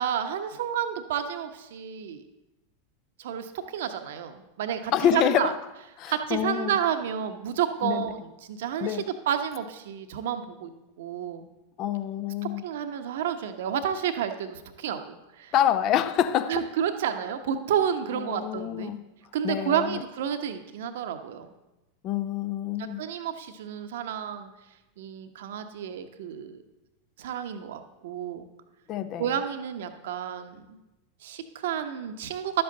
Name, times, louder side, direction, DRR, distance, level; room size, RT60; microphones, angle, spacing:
voice 1, 0.0-2.2 3.2-5.5 6.1-10.7 11.0-11.5 12.6-15.5 16.5-18.9 19.3-21.5 22.8-24.5 25.0-26.6 27.2-28.5 29.2-30.8 31.2-32.6, right 9 dB, 60° right, 8 dB, 1.0 m, -30 dB
voice 2, 4.9-5.6 6.0-6.7 7.8-8.0 8.8-9.0 11.8-12.6 15.5-16.6 18.3-19.0 19.4-20.0 22.0-23.0 28.9-29.3, left 10 dB, 40° left, 12 dB, 0.6 m, -26 dB
12.0 x 7.9 x 3.9 m, 0.99 s
figure-of-eight pair, 90°, 0 cm